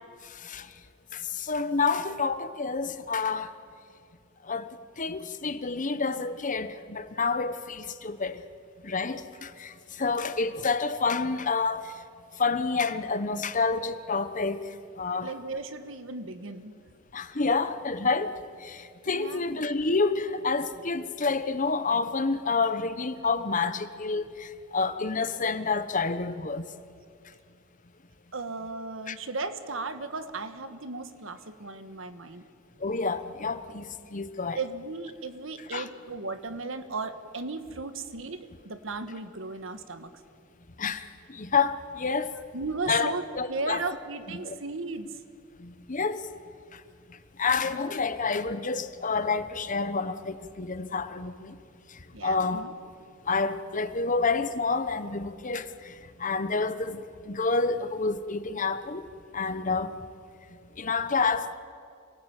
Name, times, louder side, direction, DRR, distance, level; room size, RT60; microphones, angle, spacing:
voice 1, 0.2-0.7 1.1-3.5 4.4-8.4 8.8-11.9 12.4-14.7 15.0-15.3 17.1-18.3 18.6-26.6 29.1-29.2 32.8-34.6 35.7-35.9 40.8-42.3 42.9-43.8 44.4-44.5 45.6-46.3 46.7-46.8 47.4-51.6 51.9-52.7 53.3-55.9 56.2-59.0 59.3-59.9 60.8-61.5, left 4 dB, 40° left, 1.1 m, -29 dB
voice 2, 15.2-16.7 19.0-19.7 28.3-32.4 34.5-40.1 42.5-45.1 52.1-52.7, right 3 dB, 75° right, 1.6 m, -36 dB
27.0 x 19.0 x 9.0 m
head